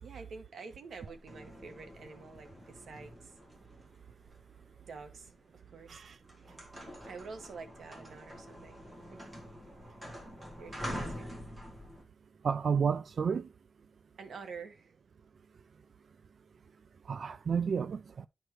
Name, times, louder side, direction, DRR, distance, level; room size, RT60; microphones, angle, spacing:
voice 1, 0.0-3.3 4.8-6.0 7.1-8.8 9.1-9.3 10.6-11.3 14.2-14.9, right 4 dB, 80° right, 1.4 m, -48 dB
sound 1, 1.0-5.2 5.8-6.0 6.2-12.0, equal, 20° right, 1.7 m, -46 dB
voice 2, 12.4-13.5 17.1-18.3, right 6 dB, 55° right, 0.3 m, -31 dB
11.0 x 4.5 x 3.0 m
wide cardioid pair, 150°, 0 cm